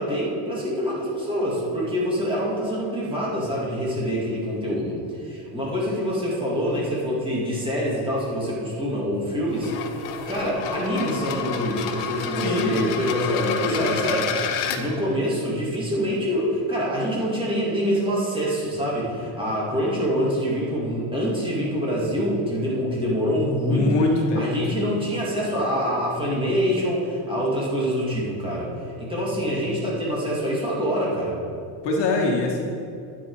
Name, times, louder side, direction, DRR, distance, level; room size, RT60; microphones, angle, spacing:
voice 1, 0.0-10.0 10.3-23.9 24.4-28.7 29.0-31.4, equal, 10° right, -5 dB, 2.1 m, -25 dB
sound 1, 9.5-14.8, left 7 dB, 80° left, 1.2 m, -30 dB
voice 2, 12.3-12.9 13.2-14.0 14.7-15.0 23.7-24.9 31.8-32.6, left 3 dB, 55° left, 0 dB, 1.7 m, -25 dB
10.0 x 9.6 x 4.7 m, 2.5 s
cardioid pair, 175°, 49 cm